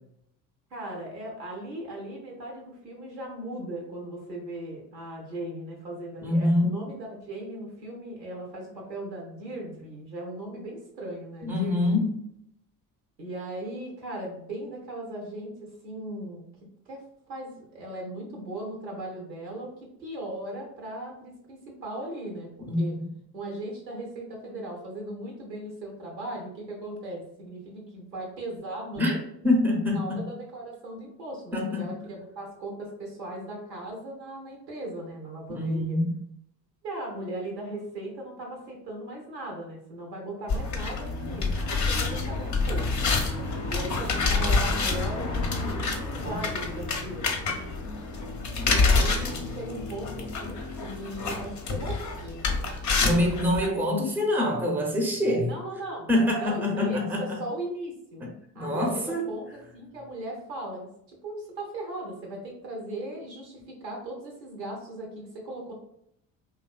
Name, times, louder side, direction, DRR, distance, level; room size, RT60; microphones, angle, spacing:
voice 1, 0.7-12.1 13.2-22.9 23.3-29.2 29.9-36.0 36.8-42.9 43.7-47.6 48.6-52.5 53.0-53.8 55.4-58.2 58.5-65.7, right 1 dB, 85° right, 0.8 m, -38 dB
voice 2, 6.2-6.8 11.4-12.2 22.7-23.0 28.9-29.1 29.4-30.3 31.5-32.0 35.5-36.1 53.0-55.5 56.1-57.4 58.5-59.2, left 1 dB, 5° right, 0.6 m, -25 dB
sound 1, 40.5-53.7, left 3 dB, 35° left, 0.6 m, -27 dB
2.8 x 2.5 x 2.2 m
figure-of-eight pair, 50°, 50 cm